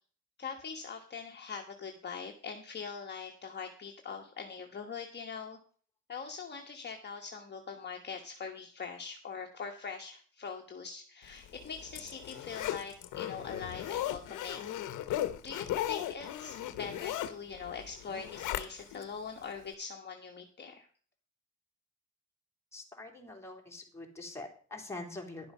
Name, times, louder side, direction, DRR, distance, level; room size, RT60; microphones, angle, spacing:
voice 1, 0.4-5.6 6.1-14.8 15.3-20.9, left 5 dB, 35° left, 2 dB, 1.3 m, -42 dB
Zipper (clothing), 11.5-19.1 19.5-19.6, left 12 dB, 85° left, 0.9 m, -37 dB
voice 2, 22.7-25.5, left 2 dB, 10° left, 0 dB, 2.9 m, -44 dB
11.0 x 6.9 x 5.5 m, 0.44 s
cardioid pair, 90°, 30 cm